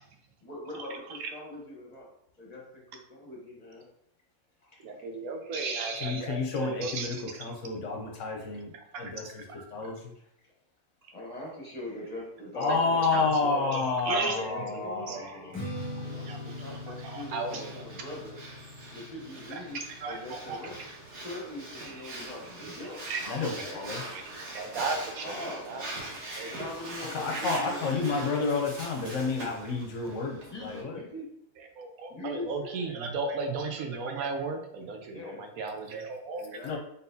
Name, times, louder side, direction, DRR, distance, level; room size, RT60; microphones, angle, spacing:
voice 1, 0.4-2.1 2.4-3.8 4.6-4.7 8.4-8.5 11.1-13.7 14.0-15.6 16.0-18.4 18.9-19.8 20.1-20.8 21.2-23.0 23.5-23.8 25.2-25.6 26.5-28.6 30.5-31.3 32.1-32.9 35.1-35.5 36.4-36.8, left 1 dB, 30° left, -3 dB, 1.0 m, -41 dB
voice 2, 4.8-7.4 8.9-9.4 12.7-15.7 16.3-16.4 17.0-17.8 19.5-20.6 21.8-22.3 23.1-23.5 24.1-24.2 24.5-25.8 26.4-26.5 31.8-36.6, right 4 dB, 80° right, 4 dB, 1.1 m, -36 dB
voice 3, 6.0-10.0 12.6-15.6 23.3-24.0 27.1-31.0 36.6-36.8, left 4 dB, 65° left, 2 dB, 0.9 m, -30 dB
Strum, 15.5-21.8, left 1 dB, 10° left, 1.3 m, -42 dB
Breathing, 15.8-30.8, right 2 dB, 55° right, 1.4 m, -42 dB
3.9 x 3.9 x 2.7 m, 0.73 s
omnidirectional pair, 1.5 m